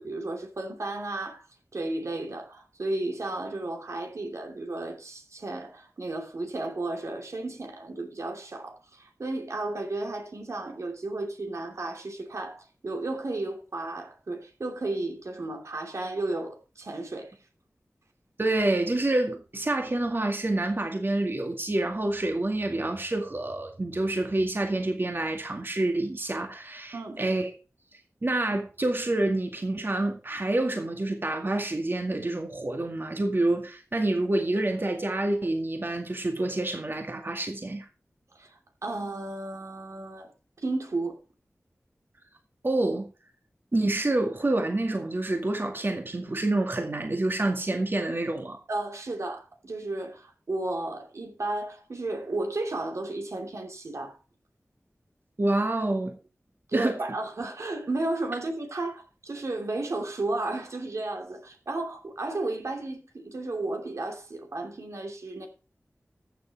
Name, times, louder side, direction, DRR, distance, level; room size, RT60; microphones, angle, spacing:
voice 1, 0.0-1.4 1.7-17.3 26.9-27.2 38.3-38.5 38.8-40.3 40.6-41.2 48.7-54.2 56.7-65.5, right 2 dB, 80° right, 2.8 m, -33 dB
voice 2, 18.4-27.5 28.2-37.9 42.6-43.1 43.7-48.6 55.4-56.1 56.7-57.0, right 2 dB, 45° right, 2.1 m, -27 dB
14.0 x 7.2 x 4.7 m
wide cardioid pair, 55°, 5 cm